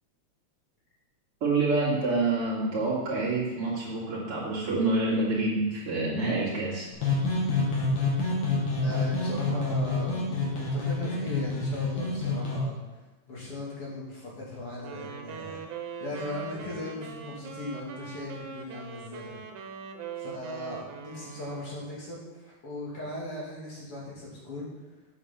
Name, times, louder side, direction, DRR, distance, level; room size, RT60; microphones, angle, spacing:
voice 1, 1.4-6.9, right 3 dB, 50° right, -6 dB, 3.1 m, -27 dB
sound 1, 6.9-12.6, left 3 dB, 85° left, 4.1 m, -28 dB
voice 2, 8.8-12.8 13.3-15.6 16.0-19.3 20.2-24.7, left 1 dB, 50° left, -5 dB, 3.6 m, -38 dB
Wind instrument woodwind instrument, 14.8-22.0, right 6 dB, 85° right, 2.4 m, -42 dB
7.9 x 7.2 x 7.1 m, 1.1 s
omnidirectional pair, 3.4 m